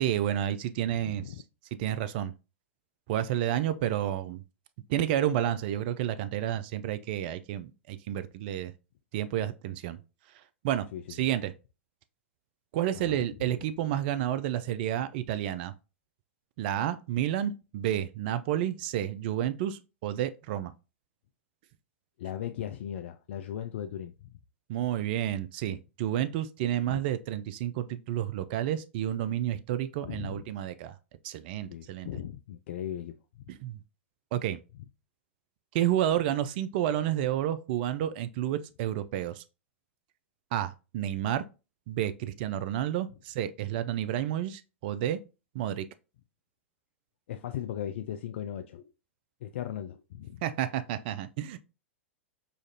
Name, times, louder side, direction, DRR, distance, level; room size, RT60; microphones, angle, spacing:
voice 1, 0.0-1.2 1.8-2.3 3.1-4.4 4.9-8.7 9.1-10.0 10.6-11.5 12.7-15.7 16.6-20.7 24.7-30.9 31.2-32.1 33.5-33.8 34.3-34.6 35.7-39.4 40.5-41.4 41.9-45.2 45.5-45.9 50.4-51.6, right 11 dB, 50° right, 0.3 m, -30 dB
voice 2, 0.9-1.4 10.9-11.3 13.0-13.2 22.2-24.3 26.9-27.0 30.0-30.5 31.7-33.5 47.3-48.9 49.4-50.4, left 10 dB, 60° left, 0.3 m, -38 dB
5.0 x 2.4 x 2.6 m
hypercardioid pair, 105°, 7 cm